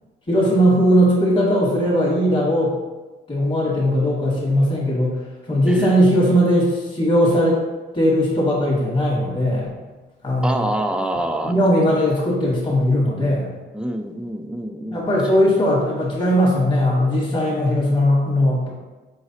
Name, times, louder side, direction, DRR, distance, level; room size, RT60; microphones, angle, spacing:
voice 1, 0.3-2.7 3.3-5.2 5.5-7.6 7.9-9.7 10.2-10.7 11.4-13.5 14.9-18.7, equal, 25° left, -6 dB, 1.2 m, -18 dB
voice 2, 5.7-6.0 10.4-11.6 13.7-15.1, right 1 dB, 5° right, 6 dB, 0.3 m, -26 dB
4.7 x 3.2 x 2.7 m, 1.2 s
cardioid pair, 90°, 20 cm